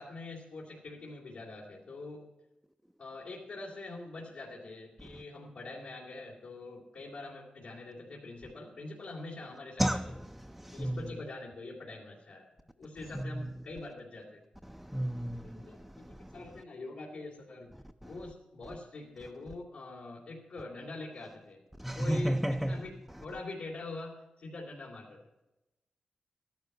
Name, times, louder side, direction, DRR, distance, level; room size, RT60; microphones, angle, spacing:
voice 1, 0.0-2.2 3.0-10.0 10.7-14.4 15.4-17.7 18.0-21.6 22.0-22.9 23.2-25.2, left 2 dB, 80° left, 2.9 m, -44 dB
voice 2, 10.5-11.0 13.2-13.5 14.7-16.3 21.8-22.8, equal, ahead, 0.4 m, -32 dB
13.5 x 11.5 x 5.5 m
cardioid pair, 90°, 3 cm